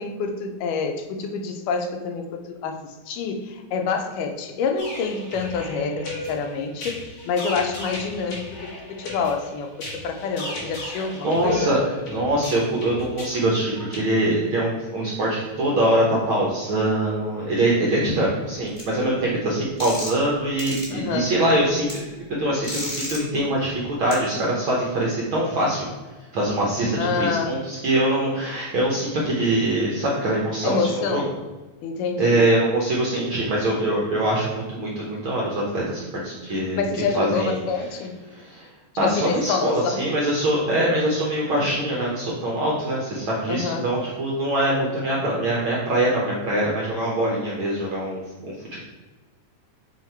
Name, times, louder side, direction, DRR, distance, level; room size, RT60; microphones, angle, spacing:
voice 1, 0.0-11.7 20.9-21.3 27.0-27.6 30.6-31.3 31.8-32.5 36.7-38.2 39.0-40.1 43.5-43.9, left 5 dB, 85° left, 5 dB, 2.3 m, -27 dB
sound 1, 4.8-14.0, left 1 dB, 50° left, 2.1 m, -36 dB
voice 2, 11.2-11.8 12.1-22.0 22.3-25.9 26.3-31.2 32.2-36.8 37.1-37.6 38.3-38.7 39.0-48.8, right 1 dB, 80° right, -4 dB, 1.1 m, -23 dB
sound 2, 18.8-18.9 19.8-20.2 20.6-20.9 21.9-22.0 22.6-23.2 24.1-24.2, left 1 dB, 15° left, 1.0 m, -31 dB
7.7 x 2.9 x 4.4 m, 1.2 s
omnidirectional pair, 3.6 m